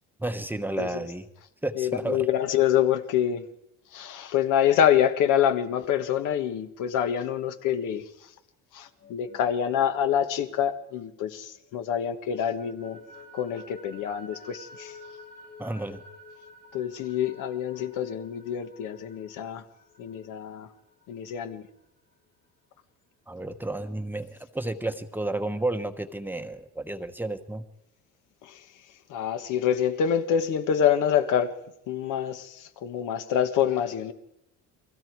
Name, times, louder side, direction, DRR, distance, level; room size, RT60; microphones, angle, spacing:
voice 1, 0.2-1.3 1.6-2.3 15.6-16.0 23.3-27.6, right 2 dB, 5° right, 1.0 m, -31 dB
voice 2, 1.8-3.5 3.9-8.0 8.7-13.0 13.3-14.9 16.7-19.6 20.0-20.7 21.1-21.6 28.4-28.6 29.1-31.5 31.9-34.1, left 9 dB, 70° left, 1.6 m, -26 dB
sound 1, 8.8-11.7 12.0-21.5, left 2 dB, 45° left, 4.3 m, -51 dB
30.0 x 21.5 x 4.7 m
cardioid pair, 150°, 32 cm